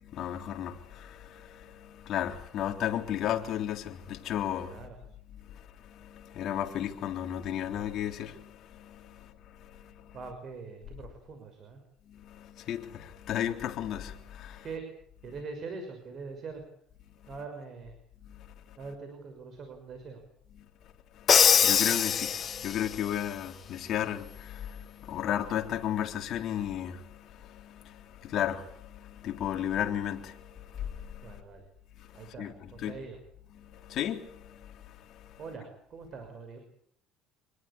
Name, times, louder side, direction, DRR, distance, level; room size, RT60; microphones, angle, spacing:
voice 1, 0.0-4.9 5.8-9.3 9.6-10.2 12.1-14.6 18.3-18.4 21.1-31.4 32.4-32.5 32.8-32.9 33.6-35.4, left 10 dB, 55° left, 3.5 m, -34 dB
voice 2, 4.7-5.0 10.1-11.8 14.6-14.8 15.2-16.6 17.3-17.9 18.8-20.2 31.2-31.6 32.1-33.2 35.4-36.6, right 4 dB, 40° right, 6.0 m, -43 dB
Crash cymbal, 21.3-23.0, left 8 dB, 35° left, 1.0 m, -23 dB
26.5 x 20.5 x 8.6 m
cardioid pair, 125°, 0 cm